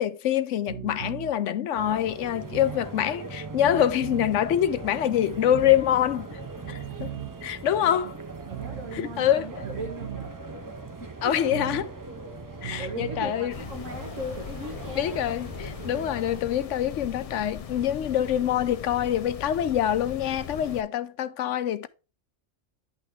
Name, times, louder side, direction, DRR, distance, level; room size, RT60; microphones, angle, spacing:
voice 1, 0.0-6.4 6.7-7.1 7.4-8.1 8.9-9.6 11.2-11.9 12.6-13.5 14.9-21.9, left 11 dB, 75° left, 1.0 m, -25 dB
sound 1, 0.7-13.6, right 10 dB, 60° right, 0.9 m, -41 dB
sound 2, 1.7-16.4, right 3 dB, 20° right, 0.5 m, -40 dB
voice 2, 7.8-8.1 8.5-10.3 11.2-11.3 12.8-15.3, right 1 dB, 85° right, 1.6 m, -38 dB
sound 3, 13.5-20.8, left 7 dB, 55° left, 0.4 m, -40 dB
10.5 x 3.4 x 4.9 m
omnidirectional pair, 1.3 m